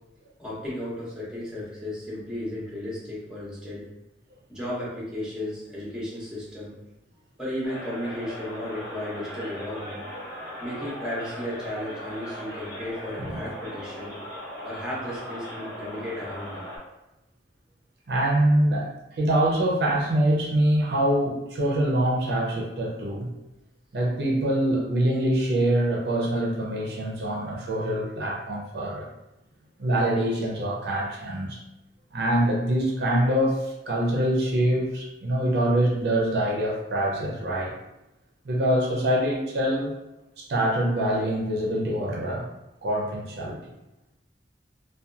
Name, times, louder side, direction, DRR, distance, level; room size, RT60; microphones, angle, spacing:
voice 1, 0.4-3.8 4.5-6.7 7.4-10.0 10.6-14.1 14.6-16.6, left 1 dB, 5° right, -7 dB, 0.7 m, -34 dB
sound 1, 7.6-16.8, left 1 dB, 70° left, 1.0 m, -38 dB
voice 2, 18.1-23.3 23.9-29.1 29.8-31.6 32.1-37.7 38.5-39.9 40.4-42.5 42.8-43.6, right 1 dB, 60° right, -2 dB, 0.5 m, -24 dB
2.7 x 2.2 x 2.3 m, 0.94 s
head